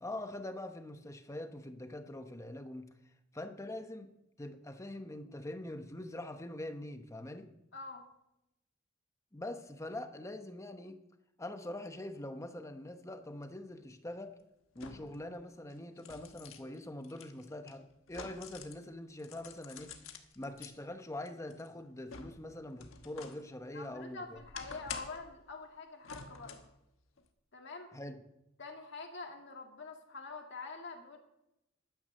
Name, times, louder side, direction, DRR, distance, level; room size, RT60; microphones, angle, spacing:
voice 1, 0.0-2.9 3.3-4.1 4.4-7.5 9.3-11.0 11.4-14.3 14.7-24.4 27.9-28.2, left 1 dB, 15° left, 7 dB, 0.9 m, -44 dB
voice 2, 7.7-8.0 23.7-26.6 27.5-27.9 28.6-31.2, left 3 dB, 60° left, 3 dB, 2.1 m, -46 dB
sound 1, 13.4-13.5 14.7-15.2 15.7-18.8 19.2-20.7 21.3-23.4 23.8-25.3 26.0-26.7 27.2-27.3, left 6 dB, 85° left, 1.3 m, -49 dB
12.0 x 9.5 x 6.5 m, 0.88 s
head